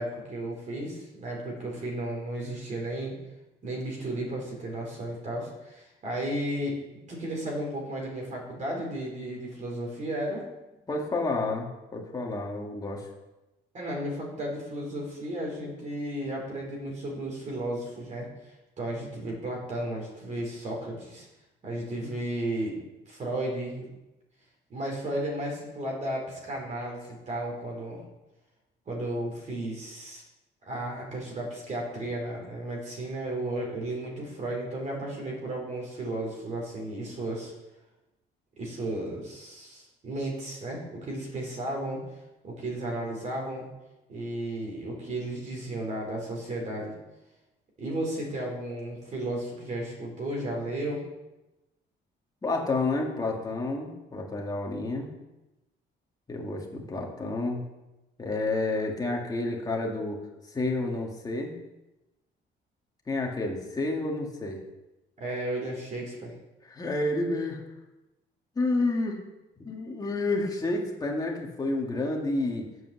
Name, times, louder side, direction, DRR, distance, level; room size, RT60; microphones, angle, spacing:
voice 1, 0.0-3.1 3.6-6.7 7.1-10.4 13.7-18.3 18.8-21.3 21.6-22.8 23.1-23.8 24.7-28.0 28.9-30.2 30.7-37.5 38.6-42.0 42.4-43.7 44.1-46.9 47.8-51.0 65.2-66.3, right 1 dB, 40° right, -1 dB, 3.3 m, -34 dB
voice 2, 10.9-13.1 52.4-55.1 56.3-57.6 58.2-60.2 60.5-61.5 63.1-64.6 66.6-67.6 68.6-69.2 69.6-72.7, left 2 dB, 20° left, -1 dB, 2.0 m, -30 dB
8.8 x 8.0 x 7.1 m, 1.0 s
cardioid pair, 160°, 19 cm